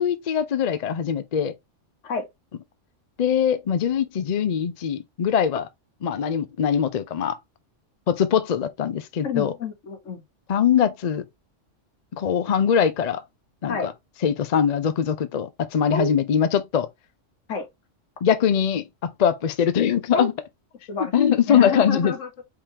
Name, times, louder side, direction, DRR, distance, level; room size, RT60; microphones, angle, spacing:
voice 1, 0.0-1.5 3.2-5.7 6.0-7.4 8.1-9.5 10.5-11.2 12.1-13.2 13.6-13.9 14.2-16.9 18.2-18.9 19.2-20.3 21.1-22.1, left 8 dB, 55° left, 0.5 m, -22 dB
voice 2, 9.2-10.2 13.7-13.9 15.9-16.1 17.5-17.7 20.1-20.3 20.9-21.1 21.5-22.4, left 4 dB, 80° left, 1.4 m, -28 dB
4.8 x 3.6 x 2.8 m
omnidirectional pair, 1.3 m